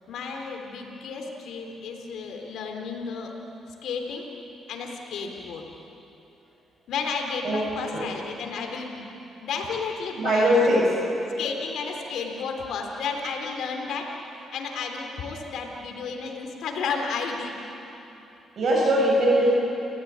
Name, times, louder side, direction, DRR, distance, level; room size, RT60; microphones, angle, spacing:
voice 1, 0.1-3.3 3.8-4.2 4.7-5.6 6.9-9.0 9.4-10.7 11.4-14.1 14.5-17.5, left 5 dB, 75° left, 2 dB, 3.8 m, -32 dB
voice 2, 10.2-10.9 18.6-19.5, equal, 55° right, -3 dB, 7.4 m, -21 dB
29.0 x 15.5 x 9.7 m, 3.0 s
cardioid pair, 90°, 0 cm